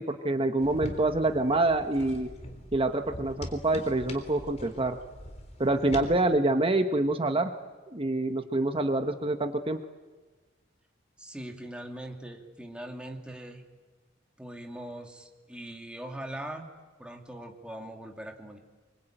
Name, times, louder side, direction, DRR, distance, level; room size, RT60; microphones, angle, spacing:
voice 1, 0.0-2.3 2.7-5.0 5.6-7.5 7.9-9.8, right 2 dB, 30° right, 7 dB, 1.1 m, -26 dB
sound 1, 0.6-6.1, left 1 dB, 35° left, 3.7 m, -42 dB
voice 2, 11.2-13.6 14.4-16.7 17.0-18.6, right 1 dB, 5° right, 2 dB, 2.6 m, -41 dB
25.5 x 23.0 x 9.1 m, 1.3 s
head